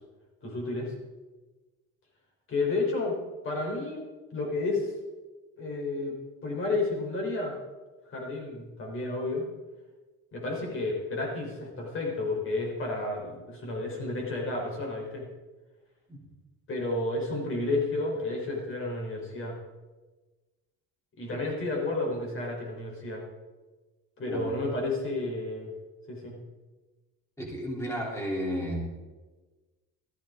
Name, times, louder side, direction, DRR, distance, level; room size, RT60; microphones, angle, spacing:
voice 1, 0.4-0.9 2.5-3.1 3.4-4.0 4.3-4.9 5.6-7.5 8.1-9.4 10.3-15.3 16.7-19.6 21.2-23.2 24.2-25.7 26.1-26.4, left 2 dB, 40° left, -1 dB, 4.3 m, -31 dB
voice 2, 27.4-28.8, equal, 10° left, -2 dB, 3.5 m, -32 dB
14.0 x 13.0 x 3.9 m, 1.2 s
cardioid pair, 145°, 32 cm